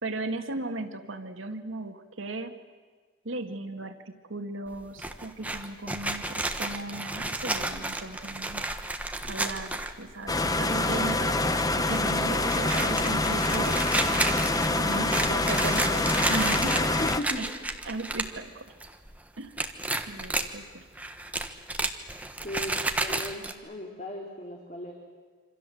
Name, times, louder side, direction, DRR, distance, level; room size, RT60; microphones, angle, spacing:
voice 1, 0.0-2.5 3.2-8.6 9.2-13.9 14.7-16.8 17.4-17.5 17.9-18.7 19.4-19.6 20.1-20.8, right 2 dB, 80° right, 6 dB, 2.0 m, -36 dB
sound 1, 4.7-10.3 10.7-10.8 11.1-11.6 11.9-18.4 18.7-19.2 19.6-20.5 21.0-23.5, right 2 dB, 10° right, 1.3 m, -32 dB
sound 2, 10.3-17.2, left 2 dB, 20° left, 1.1 m, -26 dB
voice 2, 16.8-17.5 22.4-24.9, left 1 dB, 40° left, 0 dB, 3.0 m, -37 dB
26.5 x 26.5 x 7.8 m, 1.5 s
head